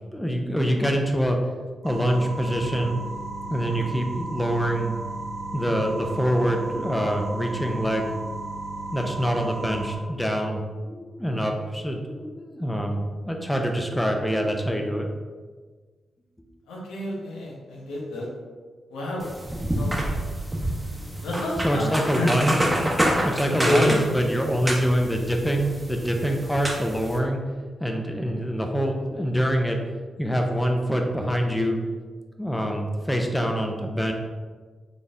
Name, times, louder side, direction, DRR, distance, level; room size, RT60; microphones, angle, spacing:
voice 1, 0.1-1.4 1.8-3.0 3.5-4.9 5.5-8.1 8.9-15.1 21.6-22.7 23.2-27.4 27.8-29.8 30.2-31.8 32.4-34.1, equal, 10° left, 2 dB, 0.6 m, -25 dB
sound 1, 1.8-10.0, right 2 dB, 80° right, 0.7 m, -34 dB
voice 2, 16.7-18.3 18.9-19.2 19.8-20.0 21.2-22.3 23.6-24.0, left 1 dB, 90° left, -4 dB, 0.9 m, -28 dB
sound 2, 19.2-27.2, right 1 dB, 15° right, 0.9 m, -28 dB
4.0 x 3.4 x 2.6 m, 1.4 s
supercardioid pair, 45°, 0 cm